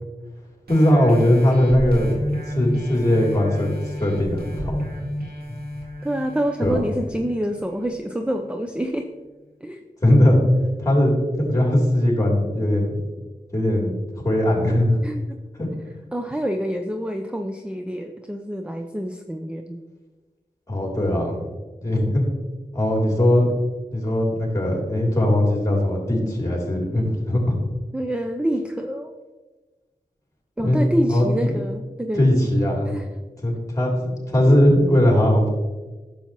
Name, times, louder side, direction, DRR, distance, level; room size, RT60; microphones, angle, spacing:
voice 1, 0.7-2.2 2.5-3.7 4.0-4.9 6.6-6.8 10.0-10.4 10.8-12.9 13.5-13.9 14.2-15.0 15.6-15.7 20.7-21.5 21.8-22.2 22.7-23.5 23.9-27.6 30.6-30.8 31.1-31.5 32.1-32.9 33.4-35.5, left 1 dB, 20° left, -1 dB, 2.9 m, -19 dB
zebra bas with deelay, 0.7-7.9 8.4-8.5, equal, 90° right, 2.0 m, -31 dB
voice 2, 6.0-9.1 9.6-9.8 15.0-15.4 16.1-19.8 27.9-29.1 30.6-32.2 32.9-33.1 34.5-34.6, equal, 5° right, 5 dB, 0.5 m, -27 dB
10.5 x 7.0 x 3.0 m, 1.2 s
cardioid pair, 55°, 15 cm